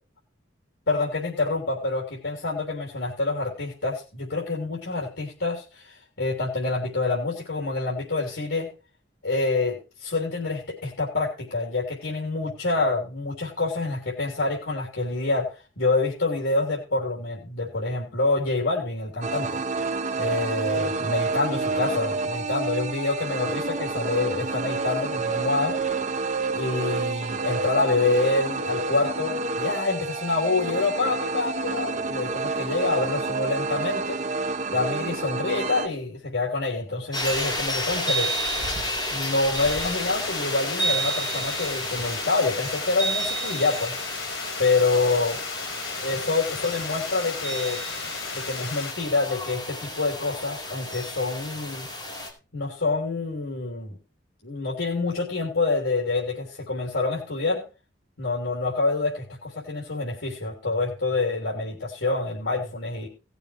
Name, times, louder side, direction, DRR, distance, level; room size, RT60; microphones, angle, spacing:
voice 1, 0.9-8.7 9.2-19.6 20.2-25.8 26.5-34.2 34.7-38.3 39.1-44.0 44.6-45.4 46.0-47.8 48.3-51.9 52.5-54.0 54.4-57.6 58.2-63.1, left 3 dB, 70° left, -2 dB, 3.4 m, -27 dB
sound 1, 19.2-35.9, right 3 dB, 35° right, 0.5 m, -29 dB
sound 2, 37.1-52.3, equal, 20° left, 4.3 m, -31 dB
Water, 39.6-48.9, left 5 dB, 90° left, 2.3 m, -36 dB
17.5 x 6.9 x 4.6 m, 0.31 s
head